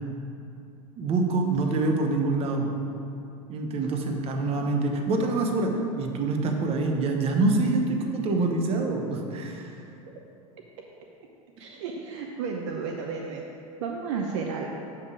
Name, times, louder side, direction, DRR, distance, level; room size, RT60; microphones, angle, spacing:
voice 1, 1.0-2.7 3.5-9.8, right 3 dB, 35° right, 3 dB, 0.9 m, -26 dB
voice 2, 11.6-13.4 13.8-14.7, right 5 dB, 55° right, 1 dB, 0.6 m, -32 dB
6.5 x 5.4 x 4.8 m, 2.7 s
figure-of-eight pair, 80°, 18 cm